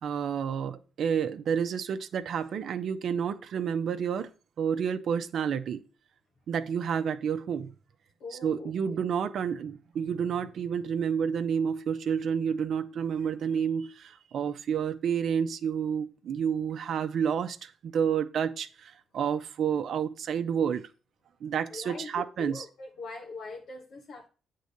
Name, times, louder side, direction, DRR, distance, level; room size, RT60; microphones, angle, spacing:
voice 1, 0.0-4.3 4.6-5.8 6.5-7.7 8.4-20.9 21.4-22.6, right 7 dB, 65° right, 0.7 m, -30 dB
voice 2, 8.2-9.0 21.7-24.3, left 3 dB, 70° left, 1.3 m, -42 dB
8.1 x 3.8 x 6.5 m
cardioid pair, 90°, 0 cm